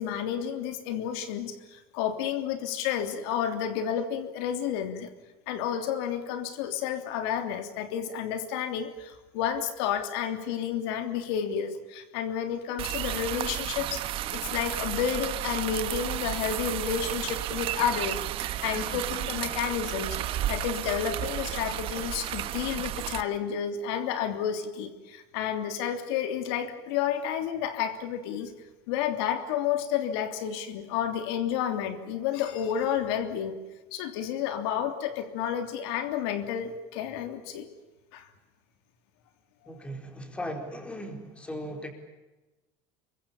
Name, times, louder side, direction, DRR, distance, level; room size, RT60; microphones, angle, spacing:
voice 1, 0.0-5.1 5.5-14.0 14.3-20.2 20.5-28.5 28.9-33.5 33.9-37.7 38.1-38.3 39.7-39.8, left 8 dB, 80° left, 7 dB, 3.2 m, -31 dB
sound 1, 12.8-23.2, right 13 dB, 45° right, 1.3 m, -32 dB
voice 2, 39.7-41.9, equal, 10° left, 4 dB, 4.5 m, -37 dB
28.0 x 23.5 x 7.3 m, 1.1 s
cardioid pair, 150°, 13 cm